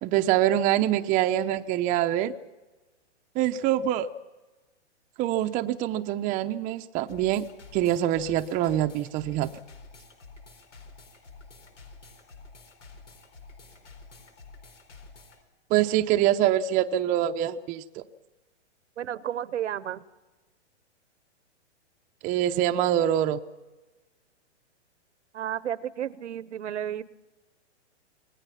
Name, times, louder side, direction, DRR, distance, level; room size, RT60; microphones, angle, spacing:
voice 1, 0.0-2.3 3.3-4.1 5.2-7.5 7.7-9.5 15.7-18.0 22.2-23.4, right 12 dB, 25° right, 7 dB, 0.7 m, -25 dB
sound 1, 7.1-15.4, left 3 dB, 85° left, 4.3 m, -49 dB
voice 2, 19.0-20.0 25.3-27.0, right 10 dB, 80° right, 17 dB, 1.1 m, -32 dB
26.5 x 20.0 x 5.8 m, 1.2 s
hypercardioid pair, 135°, 35 cm